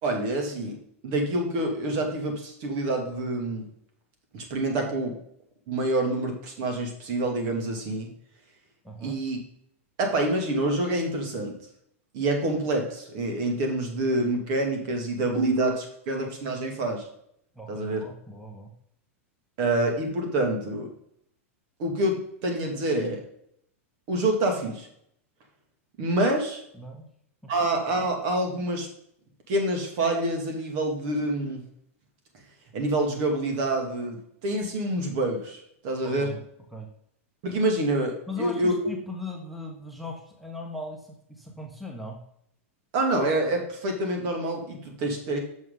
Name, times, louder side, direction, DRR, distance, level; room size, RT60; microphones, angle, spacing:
voice 1, 0.0-0.8 1.0-3.6 4.3-5.2 5.7-8.1 9.0-9.4 10.0-11.6 12.1-17.0 17.7-18.0 19.6-20.9 21.8-23.2 24.1-24.9 26.0-26.6 27.5-28.9 29.5-31.6 32.7-36.3 37.4-38.7 42.9-45.4, right 1 dB, 50° right, 3 dB, 2.5 m, -27 dB
voice 2, 8.8-9.2 17.5-18.7 26.7-27.0 27.4-27.5 36.0-36.4 36.7-36.9 38.3-42.2, left 2 dB, ahead, 1 dB, 1.4 m, -39 dB
7.5 x 6.4 x 3.9 m, 0.70 s
hypercardioid pair, 115°, 7 cm